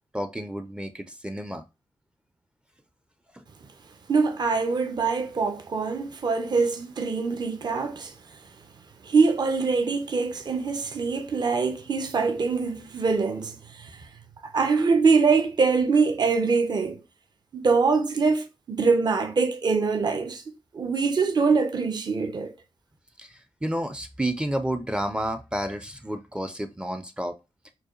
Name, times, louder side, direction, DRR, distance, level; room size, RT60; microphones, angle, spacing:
voice 1, 0.1-1.6 3.3-3.4 23.2-27.4, right 1 dB, 10° right, 0.5 m, -31 dB
voice 2, 4.1-8.1 9.0-14.1 14.4-17.0 17.5-20.4 20.7-22.5, right 4 dB, 45° right, 0.7 m, -24 dB
4.6 x 2.3 x 3.1 m
cardioid pair, 85°, 10 cm